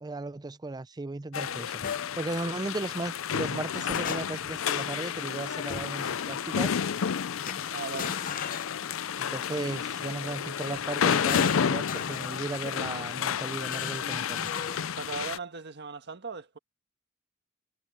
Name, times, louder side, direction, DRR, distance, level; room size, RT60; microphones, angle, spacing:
voice 1, 0.0-1.8 2.2-6.8 9.2-14.5, right 2 dB, 20° right, 0.5 m, -36 dB
sound 1, 1.3-15.4, left 7 dB, 80° left, 0.5 m, -31 dB
sound 2, 1.8-2.0 3.5-4.6 5.7-6.1 7.4-9.3 10.6-12.4 13.6-15.0, left 7 dB, 45° left, 0.7 m, -39 dB
voice 2, 7.7-8.2 14.9-16.6, right 4 dB, 60° right, 1.5 m, -38 dB
head